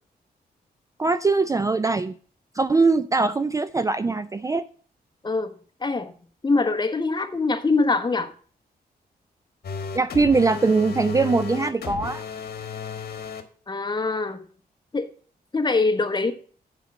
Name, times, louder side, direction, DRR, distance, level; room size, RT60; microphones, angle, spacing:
voice 1, 1.0-2.1 2.5-4.7 9.9-12.2, right 3 dB, 20° right, 0.4 m, -21 dB
voice 2, 5.8-6.1 6.4-8.3 13.7-14.4 14.9-15.1 15.5-16.3, left 3 dB, 25° left, 1.1 m, -23 dB
sound 1, 9.6-13.4, left 6 dB, 70° left, 1.2 m, -33 dB
7.1 x 5.3 x 7.1 m
cardioid pair, 95°, 17 cm